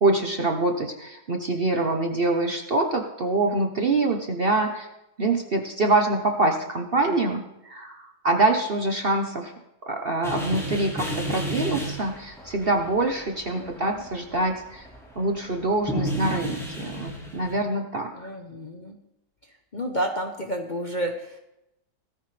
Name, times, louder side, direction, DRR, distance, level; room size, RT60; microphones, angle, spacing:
voice 1, 0.0-4.9 5.2-9.5 9.9-14.9 15.2-18.1, right 2 dB, 40° right, 3 dB, 1.0 m, -25 dB
sound 1, 10.2-15.6 15.9-17.5, equal, ahead, 5.7 m, -32 dB
voice 2, 13.5-14.0 18.1-19.0 19.5-21.4, equal, 35° left, 2 dB, 0.9 m, -31 dB
17.5 x 14.0 x 3.4 m, 0.88 s
omnidirectional pair, 1.9 m